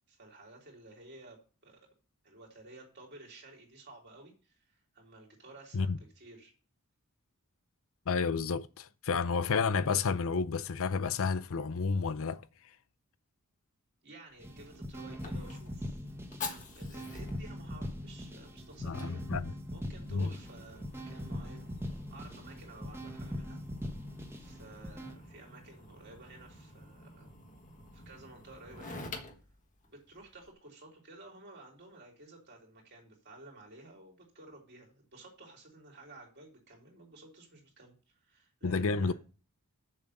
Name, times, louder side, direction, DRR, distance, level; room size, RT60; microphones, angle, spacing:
voice 1, 0.1-1.8 2.2-6.5 14.0-16.0 16.4-19.4 19.7-21.7 22.1-23.6 24.4-27.3 27.9-29.1 29.9-39.1, right 2 dB, 50° right, 3.5 m, -53 dB
voice 2, 8.1-12.4 18.8-19.5 20.1-20.3 38.6-39.1, left 5 dB, 65° left, 0.6 m, -31 dB
Fire, 14.3-30.5, left 3 dB, 35° left, 1.4 m, -49 dB
sound 1, 14.4-25.1, equal, 10° right, 1.1 m, -41 dB
7.2 x 6.1 x 6.6 m
head